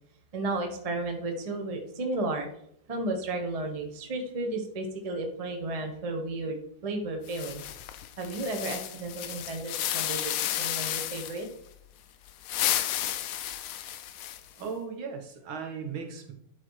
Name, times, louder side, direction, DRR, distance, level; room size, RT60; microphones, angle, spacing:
voice 1, 0.3-2.5 2.9-6.6 6.8-7.7 8.2-10.3 10.6-11.5, right 2 dB, 25° right, 3 dB, 0.8 m, -33 dB
sound 1, 7.3-11.5 12.3-14.6, left 12 dB, 85° left, 1.5 m, -32 dB
voice 2, 14.6-16.3, right 5 dB, 70° right, 4 dB, 2.0 m, -37 dB
11.0 x 4.1 x 4.8 m, 0.71 s
omnidirectional pair, 2.3 m